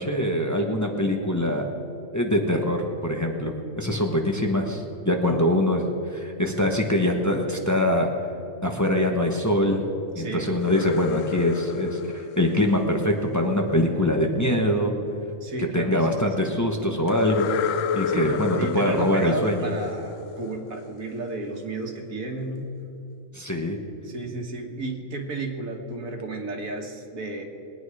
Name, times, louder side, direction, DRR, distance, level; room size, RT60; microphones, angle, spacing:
voice 1, 0.0-1.7 2.1-5.8 6.1-8.1 8.6-9.8 10.1-14.9 15.7-17.5 17.9-19.7 23.3-23.8, left 1 dB, 15° left, 2 dB, 1.0 m, -23 dB
voice 2, 10.2-10.6 15.4-16.5 18.1-22.7 24.0-27.4, right 2 dB, 85° right, 2 dB, 2.0 m, -33 dB
sound 1, 10.5-13.4 17.1-20.8, left 7 dB, 75° left, 0.9 m, -31 dB
21.5 x 9.0 x 4.9 m, 2.9 s
omnidirectional pair, 1.4 m